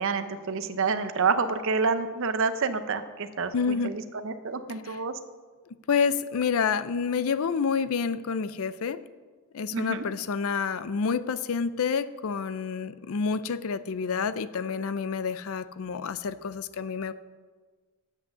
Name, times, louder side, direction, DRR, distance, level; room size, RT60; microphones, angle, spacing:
voice 1, 0.0-5.1 9.7-10.0, right 4 dB, 60° right, 10 dB, 0.7 m, -28 dB
voice 2, 3.5-4.0 4.7-5.0 5.9-9.0 9.5-17.1, left 6 dB, 65° left, 14 dB, 0.5 m, -28 dB
8.2 x 7.9 x 6.7 m, 1.4 s
head